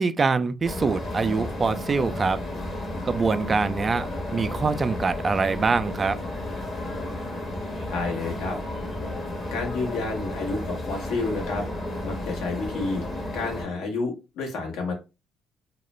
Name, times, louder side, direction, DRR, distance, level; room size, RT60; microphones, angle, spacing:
voice 1, 0.0-2.4 3.0-6.2, right 4 dB, 35° right, 0.3 m, -24 dB
sound 1, 0.6-13.7, left 1 dB, 40° left, 1.0 m, -32 dB
voice 2, 7.9-8.6 9.5-11.6 12.0-13.0 13.3-14.9, left 3 dB, 70° left, 1.0 m, -30 dB
2.3 x 2.1 x 3.1 m
hypercardioid pair, 55°, 0 cm